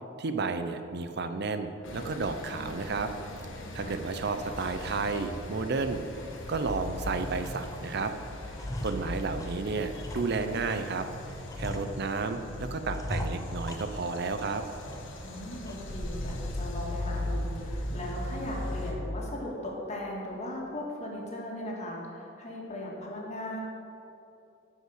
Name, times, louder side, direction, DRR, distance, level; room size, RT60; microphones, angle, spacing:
voice 1, 0.2-3.1 3.7-6.0 6.5-8.1 8.8-11.1 11.6-14.6, right 4 dB, 60° right, 8 dB, 0.6 m, -32 dB
sound 1, 1.8-18.9, left 1 dB, 85° left, 1.4 m, -38 dB
sound 2, 6.1-7.0 7.4-8.0 8.3-11.0 11.4-12.4 12.9-14.4 14.7-15.3 15.7-15.8 16.3-16.6, equal, 20° left, 0.8 m, -41 dB
voice 2, 15.2-23.6, left 1 dB, 35° left, -2 dB, 2.0 m, -38 dB
11.0 x 5.4 x 7.9 m, 2.7 s
head